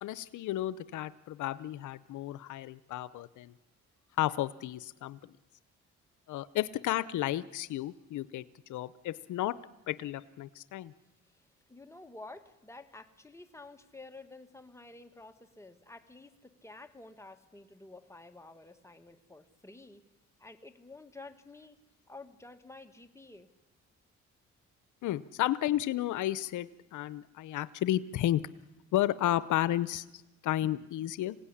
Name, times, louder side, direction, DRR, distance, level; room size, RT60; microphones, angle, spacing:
voice 1, 0.0-3.5 4.2-5.3 6.3-9.6 9.9-10.9 25.0-28.4 28.9-31.4, left 13 dB, 80° left, 17 dB, 0.7 m, -32 dB
voice 2, 11.3-20.0 20.4-21.8 22.1-23.5, left 2 dB, 10° left, 7 dB, 1.8 m, -51 dB
26.0 x 17.0 x 10.0 m, 1.1 s
cardioid pair, 90°, 30 cm